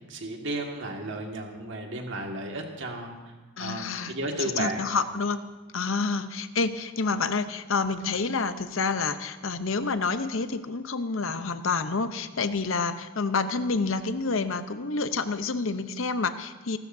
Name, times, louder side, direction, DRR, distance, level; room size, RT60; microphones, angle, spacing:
voice 1, 0.1-3.2 3.6-4.8, right 1 dB, 60° right, 2 dB, 1.9 m, -33 dB
voice 2, 3.6-4.1 4.4-5.4 5.7-16.8, left 4 dB, 65° left, 10 dB, 0.8 m, -28 dB
25.5 x 13.0 x 2.7 m, 1.3 s
head